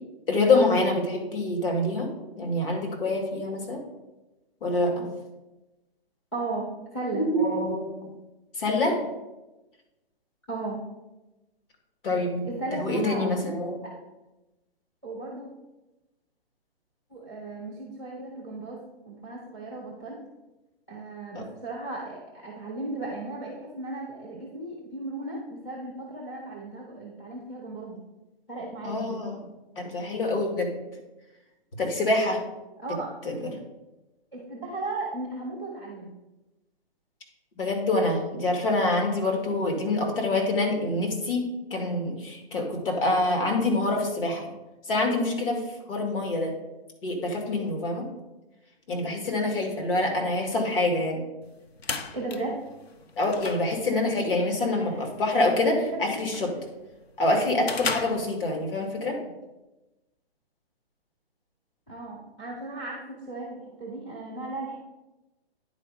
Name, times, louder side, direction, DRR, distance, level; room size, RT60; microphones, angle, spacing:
voice 1, 0.3-2.1 2.4-3.8 4.6-5.1 7.1-8.1 8.6-9.0 12.0-12.5 12.8-13.8 21.3-21.4 28.8-29.4 29.8-30.7 31.8-32.5 33.3-33.4 37.6-44.5 44.9-45.6 45.9-46.5 47.0-48.1 48.9-51.3 53.2-56.5 57.2-59.2, left 2 dB, 60° left, 1 dB, 2.3 m, -26 dB
voice 2, 6.3-7.2 10.5-10.8 12.4-13.3 13.8-13.9 15.0-15.5 17.1-20.2 20.9-28.0 28.5-29.2 32.8-33.1 34.3-36.1 52.1-52.5 54.6-55.1 55.8-56.6 61.9-64.8, right 2 dB, 5° left, -6 dB, 0.4 m, -36 dB
sound 1, 51.4-58.9, left 5 dB, 75° left, 0.9 m, -38 dB
9.8 x 4.2 x 5.0 m, 1.0 s
hypercardioid pair, 160°, 31 cm